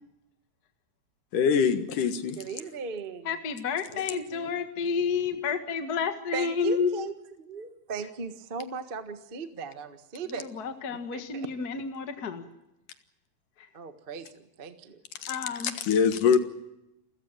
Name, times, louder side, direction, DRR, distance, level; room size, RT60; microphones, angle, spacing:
voice 1, 1.3-2.4 15.2-15.3 15.8-16.4, left 6 dB, 75° left, 10 dB, 3.0 m, -23 dB
voice 2, 2.3-3.3 3.9-4.6 6.3-7.1 7.4-10.5 10.9-11.5 13.7-15.0, right 5 dB, 45° right, 9 dB, 0.7 m, -38 dB
voice 3, 3.2-6.9 10.3-12.4 13.6-13.7 15.3-15.7, left 6 dB, 40° left, 8 dB, 1.6 m, -30 dB
28.5 x 15.0 x 8.9 m, 0.86 s
omnidirectional pair, 3.8 m